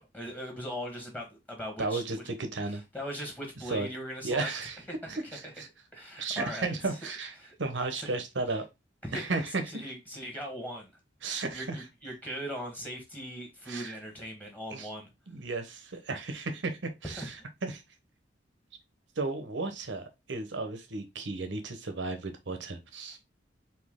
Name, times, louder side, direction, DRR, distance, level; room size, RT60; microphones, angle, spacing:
voice 1, 0.0-2.0 2.7-4.5 4.9-5.1 5.9-7.0 7.4-7.5 8.0-8.1 9.0-10.9 11.5-15.1 17.2-17.3 23.1-23.2, equal, 10° left, 1.2 m, -39 dB
voice 2, 1.8-2.8 3.7-3.9 4.2-4.8 5.1-5.7 6.2-8.6 9.1-9.9 11.2-11.8 13.7-14.0 14.7-14.9 15.3-17.4 17.6-17.8 19.2-23.2, right 3 dB, 85° right, 1.0 m, -34 dB
4.4 x 2.8 x 3.6 m
head